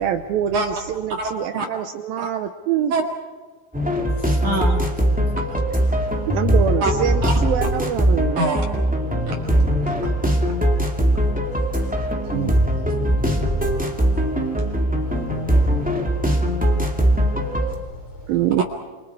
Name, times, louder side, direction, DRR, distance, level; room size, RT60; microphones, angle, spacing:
voice 1, 0.0-2.9 6.3-8.5 18.3-18.6, right 10 dB, 75° right, 2.4 m, -24 dB
voice 2, 1.1-1.7 2.2-2.3 2.9-3.0 4.4-4.8 5.3-5.4 6.1-6.2 6.8-6.9 7.2-7.3 8.4-8.7 9.3-10.1 10.4-10.6 12.3-12.6 18.6-18.7, right 3 dB, 55° right, 3.1 m, -26 dB
sound 1, 3.7-17.7, equal, 5° right, 1.1 m, -21 dB
voice 3, 4.1-4.4 6.0-6.2 10.0-10.2 11.1-11.2 11.5-11.9 12.3-13.0 13.4-14.8 15.0-18.3, equal, 40° left, 6.7 m, -40 dB
28.5 x 25.0 x 4.8 m
omnidirectional pair, 4.8 m